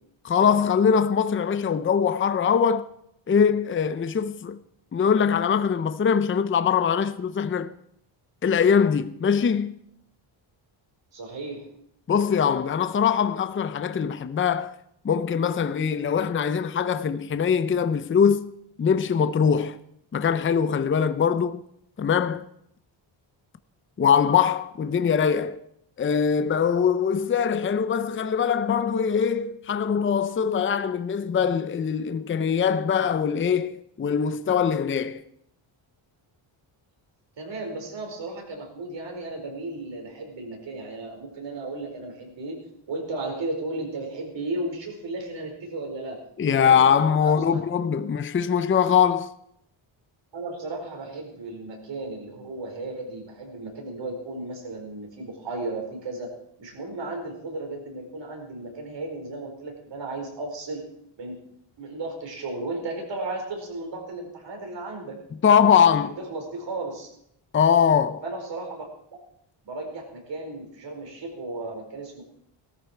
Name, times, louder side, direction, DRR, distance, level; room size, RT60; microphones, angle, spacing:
voice 1, 0.2-2.9 3.3-4.6 4.9-7.7 8.4-9.8 12.1-14.7 15.0-18.5 18.8-19.8 20.1-21.6 22.0-22.5 24.0-25.6 26.0-35.2 46.4-49.3 65.4-66.2 67.5-68.2, left 7 dB, 25° left, 0.6 m, -22 dB
voice 2, 11.1-11.7 37.4-42.6 42.9-46.2 46.5-46.8 47.2-47.6 48.0-48.1 50.3-56.3 56.6-60.8 61.2-61.4 61.8-65.2 65.9-67.1 68.2-68.8 69.6-72.2, right 2 dB, 60° right, 5.0 m, -34 dB
18.0 x 13.5 x 4.5 m
cardioid pair, 125°, 48 cm